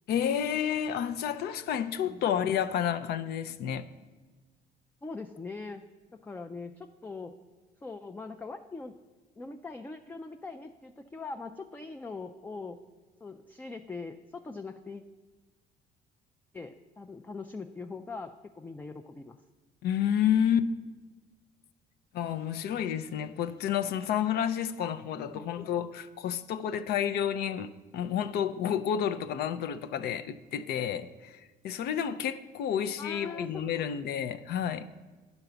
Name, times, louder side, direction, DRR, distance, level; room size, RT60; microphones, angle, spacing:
voice 1, 0.1-3.9 19.8-20.7 22.1-34.9, left 9 dB, 70° left, 0.5 m, -30 dB
voice 2, 5.0-5.8 6.2-7.4 7.8-9.0 9.4-12.8 13.2-15.0 16.5-19.4 25.3-25.5 33.0-33.9, left 3 dB, 10° left, 0.3 m, -41 dB
9.9 x 4.1 x 6.8 m
cardioid pair, 110°, 17 cm